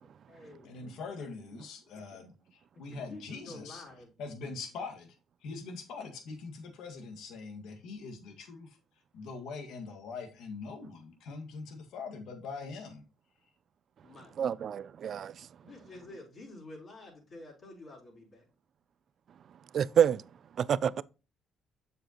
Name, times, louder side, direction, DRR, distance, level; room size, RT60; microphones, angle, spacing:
voice 1, 0.0-0.7 2.9-4.1 4.4-4.6 5.5-5.7 14.0-14.6 15.6-18.4, left 2 dB, 50° left, 4.3 m, -50 dB
voice 2, 0.6-3.8 4.2-5.2 5.4-8.8 9.1-13.0, left 4 dB, 75° left, 1.8 m, -43 dB
voice 3, 14.4-15.3 19.7-20.2 20.6-21.0, right 8 dB, 55° right, 0.4 m, -27 dB
7.7 x 6.6 x 3.0 m
cardioid pair, 95°, 0 cm